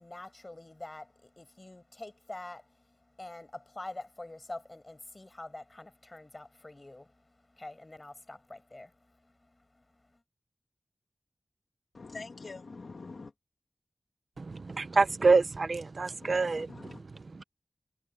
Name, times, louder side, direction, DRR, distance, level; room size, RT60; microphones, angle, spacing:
voice 1, 0.0-10.2, left 2 dB, 35° left, 6.0 m, -46 dB
voice 2, 11.9-13.3 16.2-17.0, left 4 dB, 75° left, 2.6 m, -45 dB
voice 3, 14.4-16.7 17.1-17.4, right 4 dB, 70° right, 1.0 m, -26 dB
wide cardioid pair, 55°, 0 cm